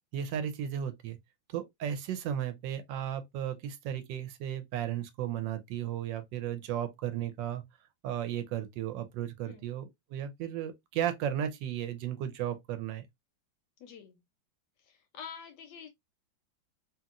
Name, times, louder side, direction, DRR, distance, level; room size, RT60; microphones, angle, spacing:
voice 1, 0.1-1.2 1.5-7.6 8.0-13.0, right 10 dB, 75° right, 1.2 m, -35 dB
voice 2, 13.8-14.2 14.8-15.9, left 7 dB, 75° left, 1.0 m, -47 dB
2.9 x 2.8 x 2.3 m
omnidirectional pair, 2.1 m